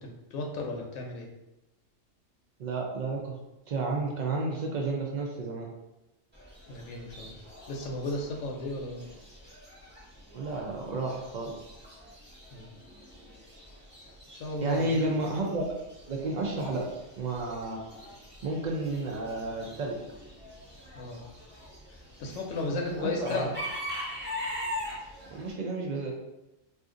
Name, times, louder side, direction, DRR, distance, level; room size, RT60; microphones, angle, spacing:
voice 1, 0.0-1.3 6.7-7.3 7.7-9.0 12.5-12.7 14.3-15.1 21.0-21.2 22.2-23.5, left 2 dB, 75° left, 0 dB, 0.9 m, -34 dB
voice 2, 2.6-3.4 3.7-5.7 10.3-11.6 14.6-15.7 16.1-16.9 17.2-17.8 18.4-20.0 22.7-23.5 25.3-26.1, right 2 dB, 85° right, -1 dB, 0.4 m, -31 dB
Chicken rooster / Bird, 6.3-25.5, left 1 dB, 10° right, 0.8 m, -43 dB
2.5 x 2.4 x 3.6 m, 0.93 s
omnidirectional pair, 1.3 m